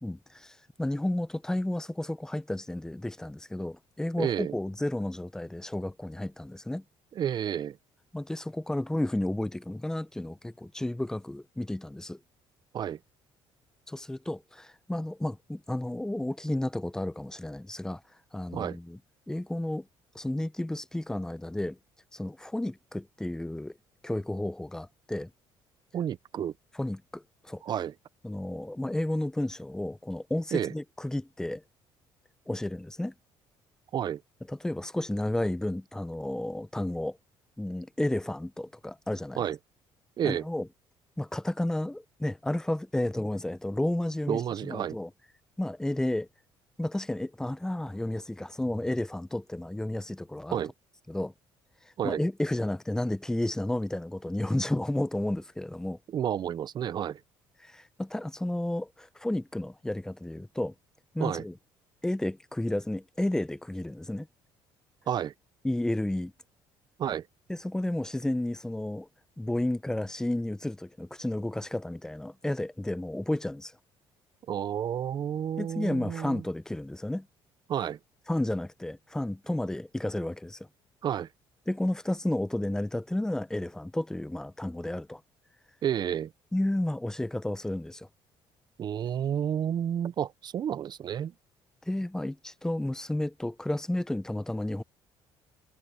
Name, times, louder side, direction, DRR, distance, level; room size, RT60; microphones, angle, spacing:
voice 1, 0.0-6.8 8.1-12.2 13.9-18.0 18.3-19.0 19.3-19.9 20.1-21.8 22.1-23.8 24.0-25.3 26.7-27.6 28.2-31.6 32.5-33.1 34.5-37.2 37.6-39.4 40.2-40.7 41.2-45.1 45.6-46.3 46.8-50.6 51.1-51.3 51.8-56.0 57.6-60.7 61.1-61.5 62.0-64.3 65.6-66.3 67.5-69.1 69.4-73.7 75.6-77.3 78.3-80.7 81.7-85.2 86.5-88.1 91.8-94.8, left 1 dB, 5° left, 0.7 m, -32 dB
voice 2, 4.2-4.5 7.2-7.8 12.7-13.0 18.5-18.8 25.9-26.5 27.6-27.9 30.5-30.7 33.9-34.2 39.4-39.6 40.2-40.4 44.3-45.0 50.5-50.7 52.0-52.2 56.1-57.2 61.2-61.4 65.1-65.3 67.0-67.2 74.5-76.4 77.7-78.0 81.0-81.3 85.8-86.3 88.8-91.3, right 9 dB, 45° right, 0.6 m, -30 dB
cardioid pair, 110°, 10 cm